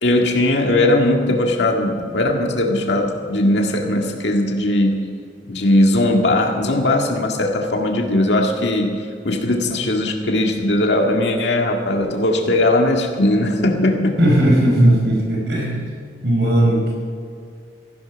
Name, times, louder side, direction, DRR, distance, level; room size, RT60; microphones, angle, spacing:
voice 1, 0.0-5.0 5.4-14.2, left 1 dB, 75° left, 1 dB, 2.0 m, -19 dB
voice 2, 14.2-15.9 16.2-16.9, right 1 dB, 75° right, -2 dB, 5.0 m, -17 dB
18.0 x 15.0 x 5.2 m, 2.3 s
head